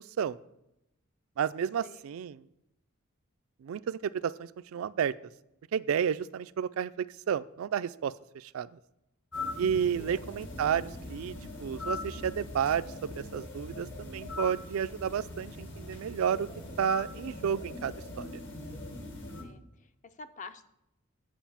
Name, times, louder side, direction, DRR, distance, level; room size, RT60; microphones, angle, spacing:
voice 1, 1.4-2.4 3.6-5.1 5.7-8.7 9.6-16.5 16.8-18.4, right 8 dB, 70° right, 15 dB, 0.3 m, -31 dB
sound 1, 9.3-19.4, left 2 dB, 60° left, 1.8 m, -41 dB
voice 2, 9.8-10.1 19.4-20.7, left 4 dB, 35° left, 10 dB, 0.5 m, -48 dB
9.2 x 4.9 x 7.1 m, 0.86 s
head